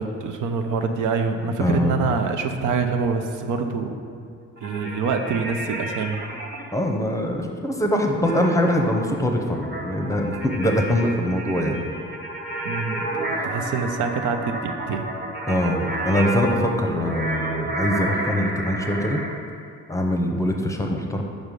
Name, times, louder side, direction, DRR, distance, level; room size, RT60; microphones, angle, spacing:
voice 1, 0.0-4.0 4.6-6.2 12.6-13.0 13.4-15.0, right 5 dB, 80° right, 6 dB, 0.6 m, -25 dB
voice 2, 1.6-2.1 6.7-11.8 15.5-19.2 19.9-21.2, left 1 dB, 10° left, 2 dB, 0.7 m, -23 dB
granular synthesizer feuertropfen, 4.6-6.6 8.2-19.3, right 1 dB, 30° right, 1.4 m, -30 dB
5.3 x 4.8 x 5.3 m, 2.5 s
cardioid pair, 90°, 30 cm